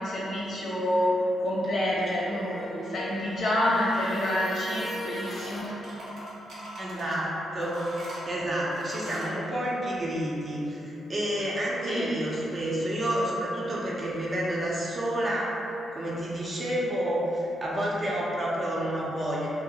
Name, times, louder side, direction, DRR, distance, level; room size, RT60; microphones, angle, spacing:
voice 1, 0.0-5.8 11.9-12.1, left 1 dB, 65° left, -6 dB, 0.9 m, -28 dB
sound 1, 2.1-5.7, equal, 15° left, 0.7 m, -39 dB
sound 2, 4.7-5.5 5.8-7.2 7.6-9.4, equal, 80° right, 0.9 m, -42 dB
voice 2, 6.8-7.9 8.2-15.6 15.9-19.5, right 1 dB, 40° right, -6 dB, 0.7 m, -29 dB
2.7 x 2.1 x 4.0 m, 3.0 s
supercardioid pair, 55°, 0 cm